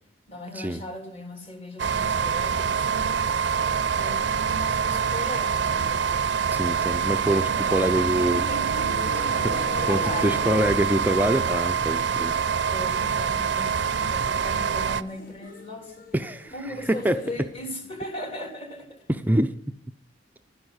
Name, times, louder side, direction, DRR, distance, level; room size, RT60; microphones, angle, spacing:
voice 1, 0.3-3.2 4.0-6.0 7.5-9.0 9.6-11.0 12.6-16.0 16.5-19.0, left 1 dB, 30° left, 3.4 m, -38 dB
sound 1, 1.8-15.0, right 6 dB, 70° right, 0.6 m, -25 dB
voice 2, 6.5-8.4 9.1-12.4 16.1-16.5 16.9-17.2 19.1-19.5, right 1 dB, 10° right, 0.6 m, -25 dB
sound 2, 7.7-12.5 12.8-13.3 13.6-13.7 14.0-14.1 14.4-18.4, left 2 dB, 50° left, 1.6 m, -41 dB
12.5 x 10.0 x 8.0 m
head